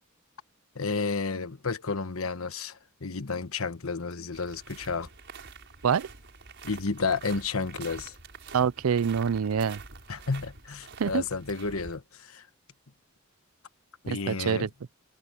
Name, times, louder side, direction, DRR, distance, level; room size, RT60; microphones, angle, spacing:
voice 1, 0.7-5.1 6.6-8.1 10.1-12.4 14.0-14.7, left 4 dB, 80° left, 1.3 m, -31 dB
sound 1, 4.3-12.0, right 4 dB, 60° right, 5.7 m, -47 dB
voice 2, 8.5-9.8 11.0-11.2 14.1-14.7, right 6 dB, 85° right, 0.5 m, -26 dB
head